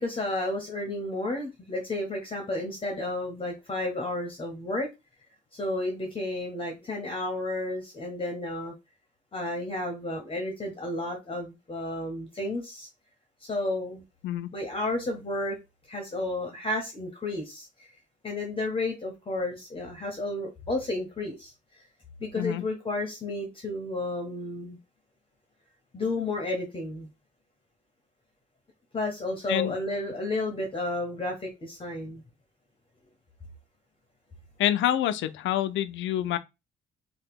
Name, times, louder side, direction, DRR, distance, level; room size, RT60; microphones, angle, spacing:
voice 1, 0.0-4.9 5.5-8.7 9.3-12.9 13.4-14.0 14.5-15.6 15.9-17.9 18.2-21.5 22.2-24.8 25.9-27.1 28.9-32.2, left 2 dB, 25° left, 0.8 m, -32 dB
voice 2, 34.6-36.4, left 12 dB, 75° left, 0.4 m, -27 dB
2.8 x 2.1 x 3.5 m
cardioid pair, 90°, 20 cm